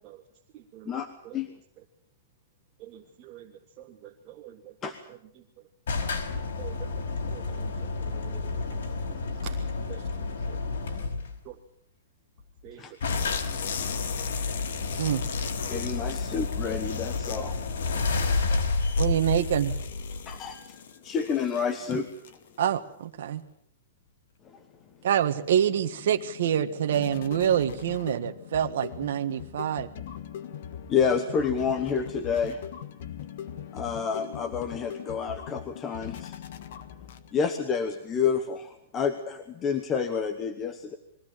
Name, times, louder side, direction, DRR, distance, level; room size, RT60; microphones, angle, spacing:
voice 1, 0.5-1.5 1.8-1.9 2.8-5.7 6.6-7.0 7.3-8.8 9.4-10.1 10.4-10.6 11.4-11.6 12.6-13.1, right 12 dB, 25° right, 0 dB, 1.6 m, -48 dB
sound 1, 5.9-11.4 12.4-12.5 12.7-12.8 13.0-20.5, left 3 dB, 85° left, 5.0 m, -30 dB
sound 2, 13.1-22.6, left 7 dB, 65° left, 2.4 m, -39 dB
voice 2, 15.7-17.6 20.3-20.8 21.0-22.1 30.9-32.6 33.7-36.4 37.3-41.0, left 6 dB, 15° left, 7 dB, 1.1 m, -29 dB
voice 3, 19.0-19.8 22.6-23.4 25.0-29.9, right 10 dB, 60° right, 6 dB, 1.6 m, -26 dB
sound 3, 24.8-37.6, left 9 dB, 50° left, 1.6 m, -41 dB
22.0 x 16.5 x 9.0 m, 0.68 s
supercardioid pair, 175°, 0 cm